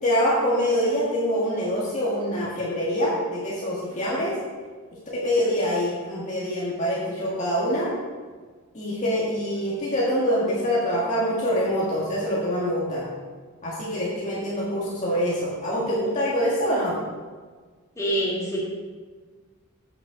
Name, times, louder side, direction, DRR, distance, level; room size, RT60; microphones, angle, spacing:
voice 1, 0.0-4.3 5.2-7.9 8.7-13.1 13.6-16.9, equal, 35° left, -6 dB, 1.7 m, -25 dB
voice 2, 18.0-18.6, equal, 15° left, -6 dB, 2.1 m, -25 dB
8.1 x 7.4 x 5.1 m, 1.5 s
head